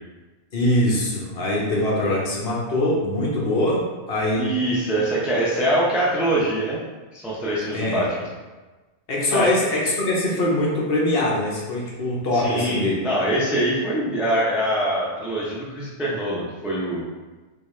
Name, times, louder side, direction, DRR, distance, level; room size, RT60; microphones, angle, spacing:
voice 1, 0.5-4.4 7.7-8.0 9.1-13.0, left 1 dB, 60° left, -3 dB, 1.0 m, -23 dB
voice 2, 4.4-6.8 7.1-8.2 9.3-9.5 12.3-17.0, right 1 dB, ahead, -6 dB, 0.4 m, -23 dB
3.8 x 2.4 x 3.1 m, 1.2 s
omnidirectional pair, 1.1 m